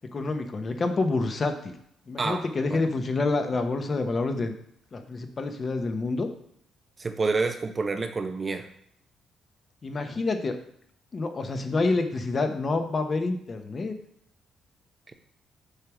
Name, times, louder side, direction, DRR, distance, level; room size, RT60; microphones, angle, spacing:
voice 1, 0.1-1.7 2.1-4.5 4.9-6.3 9.8-10.6 11.1-13.9, left 3 dB, 40° left, 6 dB, 1.0 m, -27 dB
voice 2, 2.2-2.9 7.0-8.7, right 3 dB, 30° right, 7 dB, 0.7 m, -28 dB
6.5 x 3.4 x 6.1 m, 0.68 s
cardioid pair, 90°, 0 cm